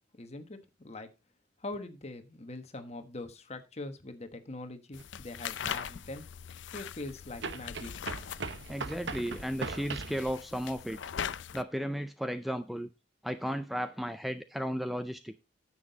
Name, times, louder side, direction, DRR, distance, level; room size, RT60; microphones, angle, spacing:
voice 1, 0.2-1.1 1.6-6.3 6.7-7.9, left 2 dB, 35° left, 8 dB, 1.2 m, -42 dB
sound 1, 4.9-11.6, left 8 dB, 80° left, 0.5 m, -41 dB
sound 2, 5.0-5.1 7.4-10.2, right 4 dB, 70° right, 0.9 m, -39 dB
voice 2, 8.7-11.0 11.5-12.9 13.2-15.4, equal, ahead, 10 dB, 0.4 m, -34 dB
9.8 x 7.4 x 4.0 m, 0.27 s
head